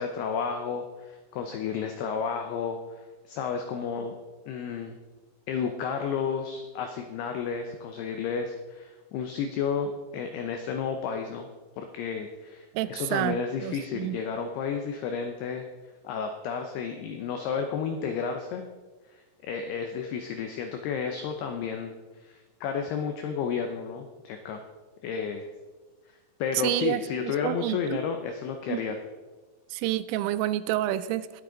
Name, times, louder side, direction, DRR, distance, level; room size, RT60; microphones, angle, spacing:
voice 1, 0.0-4.2 4.5-5.0 5.5-11.5 11.8-15.7 16.0-18.7 19.1-21.9 22.2-24.6 25.0-25.5 26.4-29.0, left 6 dB, 85° left, 5 dB, 2.3 m, -32 dB
voice 2, 12.7-14.2 26.6-28.0 28.7-28.8 29.7-31.4, right 14 dB, 85° right, 14 dB, 3.0 m, -29 dB
20.0 x 8.5 x 3.9 m, 1.3 s
omnidirectional pair, 5.7 m